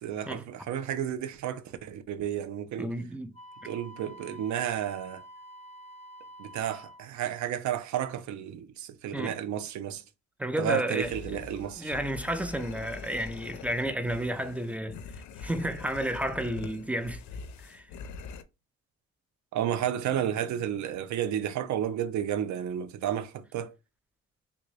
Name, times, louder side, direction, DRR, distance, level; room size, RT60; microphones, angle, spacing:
voice 1, 0.0-2.9 3.6-5.2 6.4-10.0 10.6-11.9 19.5-23.7, right 10 dB, 70° right, 0.5 m, -32 dB
voice 2, 2.8-3.3 9.1-9.3 10.4-11.1 11.8-15.0 15.4-17.2 17.6-17.9, right 1 dB, 5° right, 0.4 m, -31 dB
Wind instrument woodwind instrument, 3.3-7.1, right 1 dB, 20° left, 0.7 m, -48 dB
sound 1, 11.0-18.4, left 5 dB, 70° left, 0.5 m, -43 dB
3.4 x 2.6 x 3.1 m
cardioid pair, 90°, 30 cm